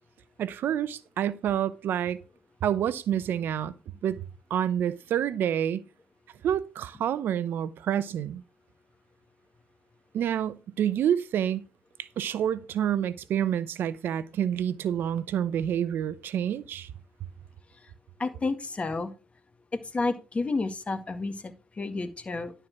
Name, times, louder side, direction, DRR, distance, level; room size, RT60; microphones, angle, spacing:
voice 1, 0.4-2.2 2.6-3.7 4.0-4.2 4.5-5.8 6.4-8.4 10.1-11.7 12.0-16.9, right 9 dB, 70° right, 0.7 m, -28 dB
voice 2, 18.2-19.1 19.9-22.5, left 3 dB, 35° left, 1.8 m, -30 dB
11.5 x 4.5 x 5.9 m
supercardioid pair, 60°, 4 cm